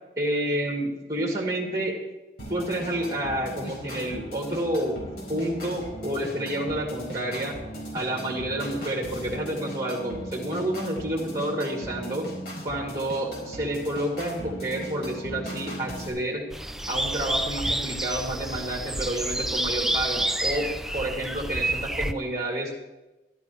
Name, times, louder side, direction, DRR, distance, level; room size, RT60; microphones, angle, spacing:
voice 1, 0.2-2.0 2.5-7.6 7.9-12.3 12.6-16.4 16.9-20.7 20.9-22.8, right 1 dB, 20° right, 1 dB, 2.1 m, -29 dB
sound 1, 2.4-16.1, right 1 dB, 65° left, 4.5 m, -38 dB
sound 2, 16.5-22.1, right 1 dB, ahead, 0.4 m, -29 dB
12.5 x 12.0 x 4.7 m, 1.0 s
head